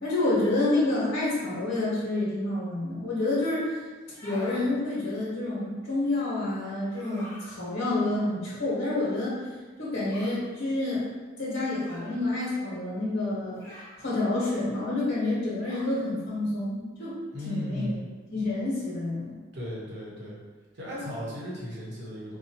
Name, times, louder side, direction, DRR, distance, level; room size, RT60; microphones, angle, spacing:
voice 1, 0.0-3.8 4.2-9.5 9.8-11.0 11.4-13.6 14.0-17.2 17.4-17.9 18.3-19.3, left 2 dB, 60° left, -9 dB, 1.0 m, -28 dB
sound 1, 4.0-4.6 6.9-7.5 10.1-10.4 11.8-12.2 13.5-14.0 15.6-16.0, equal, 15° left, 1.0 m, -45 dB
voice 2, 17.3-18.0 19.5-20.4 20.7-22.4, left 1 dB, 65° right, -6 dB, 1.0 m, -36 dB
4.3 x 2.2 x 2.8 m, 1.4 s
head